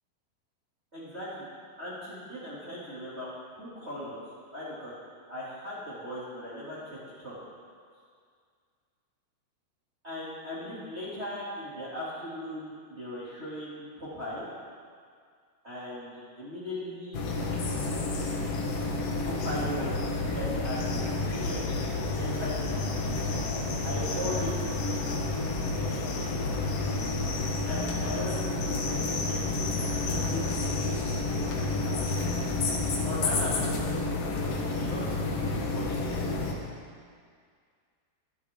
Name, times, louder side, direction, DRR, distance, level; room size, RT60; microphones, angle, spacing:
voice 1, 0.9-1.4 1.8-3.3 3.6-4.2 4.5-4.9 5.3-7.4 10.0-14.5 15.6-17.2 19.2-21.8 22.2-22.9 23.8-25.1 25.6-26.3 27.6-30.9 31.1-31.9 33.0-34.1 34.4-36.0, equal, 20° right, -9 dB, 2.1 m, -39 dB
sound 1, 17.1-36.5, left 3 dB, 80° left, 1.4 m, -30 dB
22.0 x 8.5 x 3.7 m, 2.1 s
omnidirectional pair, 4.8 m